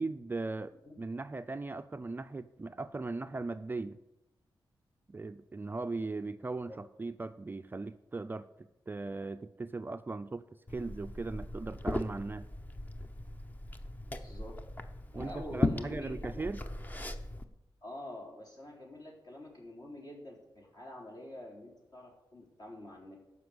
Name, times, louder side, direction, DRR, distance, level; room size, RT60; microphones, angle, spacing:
voice 1, 0.0-4.0 5.1-10.4 10.7-12.5 15.1-16.6, right 3 dB, 25° right, 10 dB, 0.4 m, -38 dB
Liquid, 10.7-17.4, left 2 dB, 20° left, 0.8 m, -38 dB
voice 2, 14.0-14.6 15.1-16.5 17.8-23.2, left 1 dB, 50° left, -1 dB, 3.9 m, -47 dB
13.5 x 5.6 x 7.9 m, 0.95 s
wide cardioid pair, 115°, 9 cm